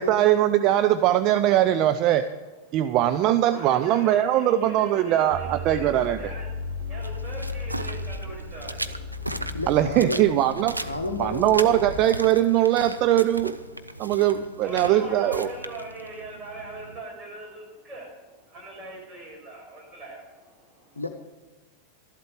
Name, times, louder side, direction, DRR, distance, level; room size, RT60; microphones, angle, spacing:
voice 1, 0.0-2.3 2.7-6.2 9.7-10.8 11.2-13.6 14.0-15.5, right 12 dB, 40° right, 10 dB, 0.5 m, -21 dB
voice 2, 3.5-9.6 13.8-14.2 14.6-21.0, right 2 dB, 25° right, -1 dB, 5.5 m, -42 dB
sound 1, 5.3-12.0, left 2 dB, 60° right, 1.6 m, -36 dB
sound 2, 7.0-17.0, right 1 dB, 85° right, 0.6 m, -38 dB
voice 3, 9.5-10.3 10.8-11.8 21.0-21.1, left 2 dB, 80° left, 6 dB, 0.8 m, -31 dB
12.5 x 12.0 x 5.0 m, 1.3 s
figure-of-eight pair, 90°, 0 cm